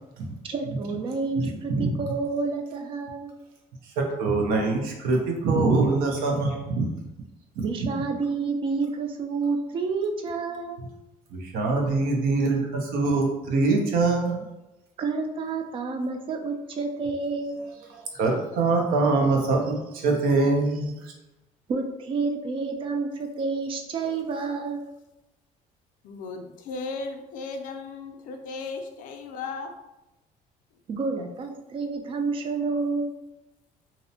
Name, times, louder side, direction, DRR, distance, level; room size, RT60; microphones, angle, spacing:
voice 1, 0.5-3.3 7.6-10.8 15.0-17.6 21.7-24.8 30.9-33.1, right 4 dB, 35° right, 4 dB, 0.4 m, -29 dB
voice 2, 1.4-2.0 4.0-6.9 7.8-7.9 11.3-14.4 18.1-21.1, right 3 dB, 75° right, 1 dB, 0.6 m, -24 dB
voice 3, 26.0-29.7, left 4 dB, 65° left, 5 dB, 0.4 m, -36 dB
2.6 x 2.0 x 2.7 m, 0.96 s
cardioid pair, 150°, 15 cm